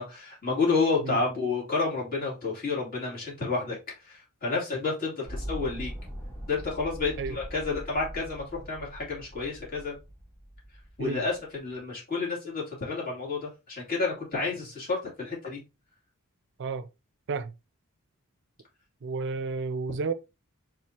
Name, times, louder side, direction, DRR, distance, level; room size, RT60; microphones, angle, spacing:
voice 1, 0.0-3.8 4.1-5.9 6.5-10.0 11.0-15.6, left 4 dB, 40° left, 2.7 m, -30 dB
sound 1, 5.2-11.6, equal, 15° left, 2.4 m, -41 dB
voice 2, 19.0-20.1, right 4 dB, 55° right, 0.4 m, -31 dB
4.7 x 3.7 x 2.8 m
head